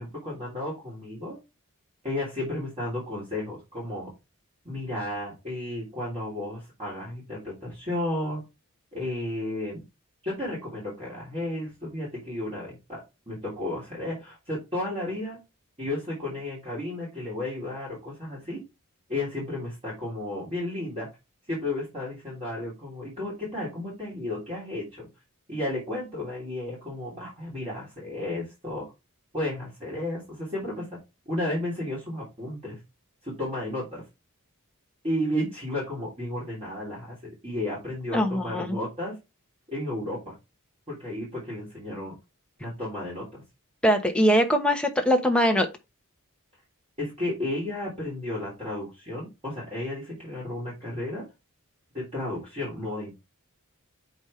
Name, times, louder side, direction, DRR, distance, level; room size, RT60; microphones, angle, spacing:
voice 1, 0.0-1.4 2.0-4.1 4.6-8.4 8.9-9.8 10.2-13.0 13.3-15.4 15.8-18.6 19.1-21.1 21.5-25.1 25.5-28.8 29.3-30.8 31.3-32.8 33.2-34.0 35.0-39.1 39.7-40.3 40.9-42.2 42.6-43.4 47.0-51.2 51.9-53.1, left 1 dB, 30° right, 3.2 m, -33 dB
voice 2, 38.1-38.8 43.8-45.7, equal, 5° left, 1.0 m, -22 dB
7.1 x 5.3 x 3.2 m
head